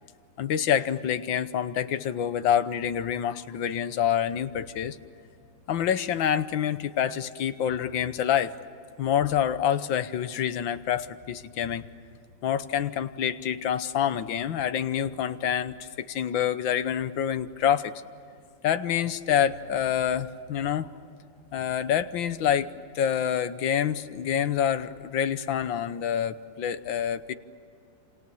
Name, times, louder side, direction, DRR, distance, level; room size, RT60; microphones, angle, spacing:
voice 1, 0.4-5.0 5.7-8.5 9.0-11.8 12.4-17.9 18.6-20.9 21.5-22.7 22.9-27.3, left 9 dB, 85° left, 12 dB, 1.7 m, -27 dB
29.5 x 27.5 x 7.0 m, 2.4 s
omnidirectional pair, 2.1 m